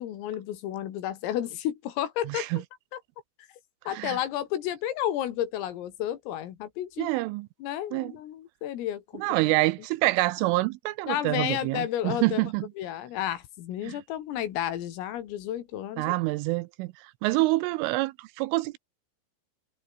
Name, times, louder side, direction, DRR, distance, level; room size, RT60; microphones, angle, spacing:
voice 1, 0.0-2.6 2.9-3.0 3.9-7.1 7.6-9.3 11.1-12.5 12.8-16.1, left 12 dB, 80° left, 4.9 m, -32 dB
voice 2, 2.3-2.6 3.9-4.2 7.0-7.5 7.9-8.1 9.2-12.7 13.8-14.0 16.0-18.8, right 20 dB, 80° right, 3.0 m, -27 dB
omnidirectional pair, 6.0 m